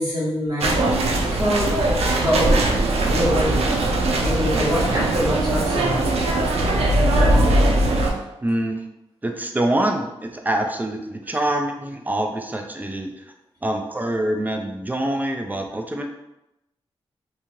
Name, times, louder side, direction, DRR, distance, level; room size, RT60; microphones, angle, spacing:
voice 1, 0.0-1.7 2.1-2.8 3.0-3.6 4.2-6.1, equal, 40° right, -9 dB, 1.5 m, -24 dB
sound 1, 0.6-8.1, right 1 dB, 90° right, 0.4 m, -20 dB
voice 2, 8.4-8.8 9.2-13.1 13.6-16.0, right 1 dB, 15° right, 3 dB, 0.3 m, -25 dB
2.6 x 2.3 x 3.0 m, 0.91 s
wide cardioid pair, 110°, 10 cm